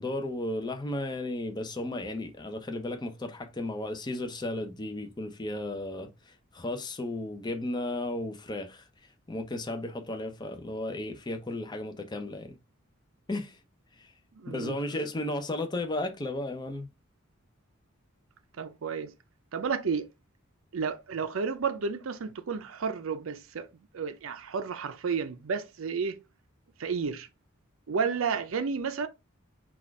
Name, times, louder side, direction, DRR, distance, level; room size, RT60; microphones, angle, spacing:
voice 1, 0.0-8.8 9.3-12.5 13.3-13.6 14.0-14.1 14.5-16.9, left 1 dB, 20° left, 0.6 m, -34 dB
voice 2, 14.3-14.8 18.6-19.1 19.5-20.1 20.7-23.7 23.9-26.2 26.8-27.3 27.9-29.1, right 5 dB, 75° right, 0.5 m, -31 dB
4.1 x 2.4 x 4.6 m
head